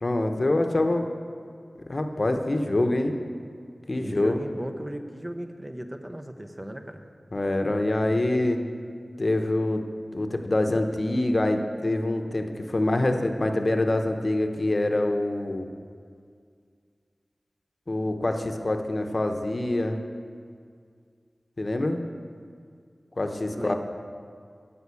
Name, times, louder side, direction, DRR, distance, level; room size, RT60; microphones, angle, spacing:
voice 1, 0.0-1.1 1.9-3.1 3.9-4.4 7.3-8.6 9.2-9.8 10.1-15.7 17.9-20.0 21.6-22.0 23.2-23.7, left 1 dB, 45° left, 5 dB, 0.9 m, -25 dB
voice 2, 4.0-7.1 23.6-23.7, right 1 dB, 20° right, 5 dB, 0.7 m, -36 dB
13.0 x 5.4 x 8.3 m, 2.1 s
wide cardioid pair, 70°, 0 cm